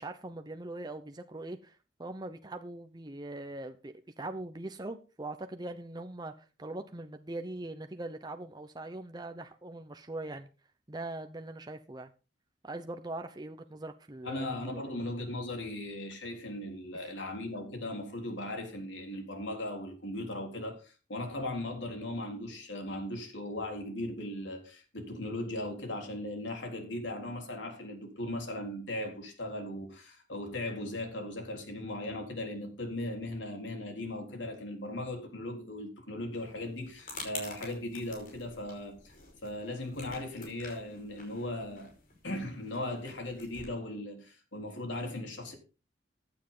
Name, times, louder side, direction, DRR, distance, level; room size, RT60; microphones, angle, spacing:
voice 1, 0.0-10.5 10.9-12.1 12.6-14.5 14.7-14.8 16.9-17.1, right 2 dB, 20° right, 0.8 m, -41 dB
voice 2, 14.2-39.2 39.4-41.9 42.2-45.5, left 1 dB, 85° left, 3.7 m, -38 dB
sound 1, 36.3-43.7, left 3 dB, 50° left, 5.3 m, -48 dB
15.5 x 9.7 x 3.8 m
head